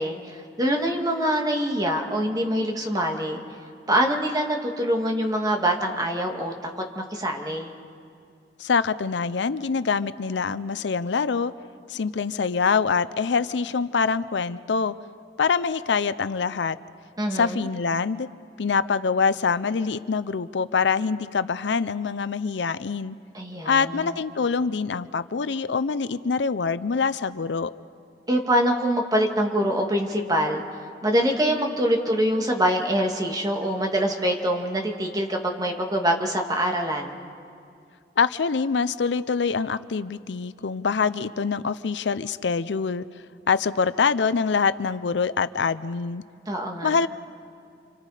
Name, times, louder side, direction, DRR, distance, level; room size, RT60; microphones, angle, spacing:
voice 1, 0.0-3.4 3.9-7.7 17.2-17.7 23.3-24.1 28.3-30.6 31.0-37.2 46.5-47.0, equal, 20° right, 2 dB, 2.0 m, -24 dB
voice 2, 8.6-11.5 11.9-14.9 15.4-16.8 17.3-18.3 18.6-23.2 23.7-27.7 38.2-43.0 43.5-46.2 46.8-47.1, left 5 dB, 80° left, 15 dB, 0.6 m, -25 dB
29.5 x 26.5 x 5.0 m, 2.4 s
head